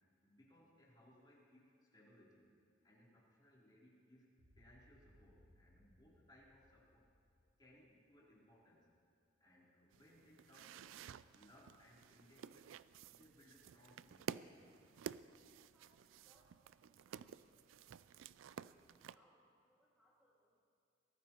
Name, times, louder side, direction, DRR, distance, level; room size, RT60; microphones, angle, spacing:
voice 1, 0.2-7.1 7.6-8.9 9.4-12.7 13.0-14.7, left 1 dB, 20° left, -6 dB, 3.4 m, -66 dB
sound 1, 4.4-8.7, equal, 60° right, 1.4 m, -70 dB
sound 2, 9.9-19.2, right 7 dB, 90° right, 0.3 m, -52 dB
voice 2, 15.7-20.7, equal, 5° right, -7 dB, 2.1 m, -75 dB
23.5 x 17.5 x 3.0 m, 2.3 s
head